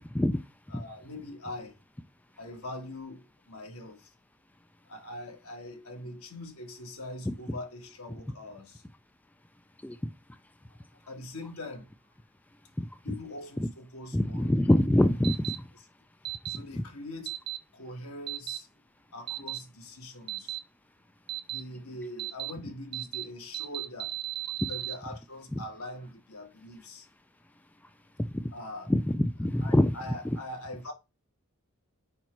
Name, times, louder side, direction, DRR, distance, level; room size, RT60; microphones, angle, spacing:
voice 1, 0.7-1.8 2.4-4.1 4.9-8.8 11.1-11.9 13.0-14.6 15.8-15.9 16.5-17.4 17.7-18.7 19.1-20.6 21.5-24.1 24.6-27.1 28.5-28.9 29.6-30.9, left 1 dB, 75° left, 2.0 m, -42 dB
voice 2, 14.1-15.4 28.2-28.4 28.9-29.9, left 1 dB, 5° left, 0.3 m, -24 dB
sound 1, 15.2-15.6 16.3-16.6 17.3-17.6 18.3-18.6 19.3-19.6 20.3-20.6 21.3-21.6 22.2-22.5 22.9-23.2 23.5-24.9, right 16 dB, 45° right, 0.5 m, -35 dB
5.0 x 4.4 x 4.5 m
head